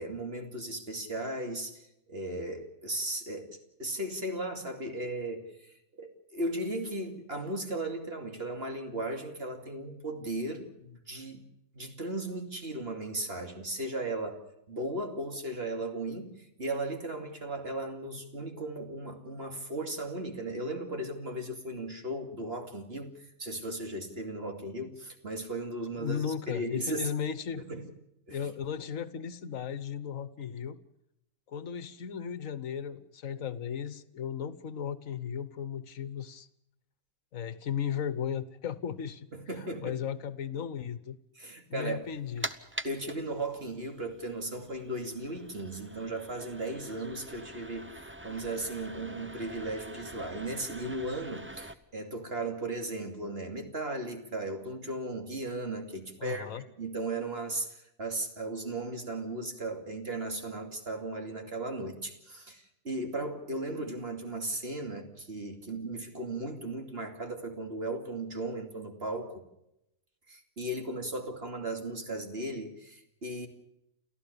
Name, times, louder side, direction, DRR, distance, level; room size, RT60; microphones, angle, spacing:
voice 1, 0.0-1.8 2.1-11.4 11.7-14.4 14.7-16.3 16.6-23.1 23.4-26.2 26.5-27.1 27.7-27.9 28.3-28.5 39.3-40.0 41.4-42.0 42.8-47.9 48.2-69.4 70.3-73.5, right 2 dB, 45° right, 4 dB, 2.9 m, -36 dB
voice 2, 26.0-27.6 28.3-30.8 31.5-36.5 37.3-39.3 39.6-41.2 41.7-42.5 56.2-56.6, left 8 dB, 70° left, 15 dB, 1.5 m, -36 dB
sound 1, 42.0-51.7, right 1 dB, 10° right, 0.7 m, -45 dB
30.0 x 14.0 x 6.8 m, 0.84 s
omnidirectional pair, 1.4 m